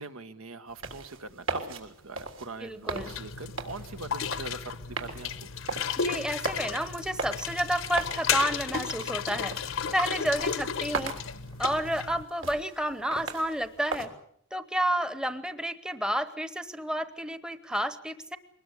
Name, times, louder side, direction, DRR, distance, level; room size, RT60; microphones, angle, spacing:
voice 1, 0.0-5.3, right 3 dB, 85° right, 9 dB, 1.6 m, -42 dB
sound 1, 0.7-14.1, right 3 dB, 65° right, 3.6 m, -39 dB
voice 2, 2.6-3.1 6.0-9.5 9.9-11.2 11.6-14.1 14.5-18.4, right 1 dB, 5° right, 12 dB, 0.9 m, -30 dB
sound 2, 3.0-12.2, left 7 dB, 70° left, 0.9 m, -33 dB
23.0 x 20.0 x 8.2 m, 0.68 s
head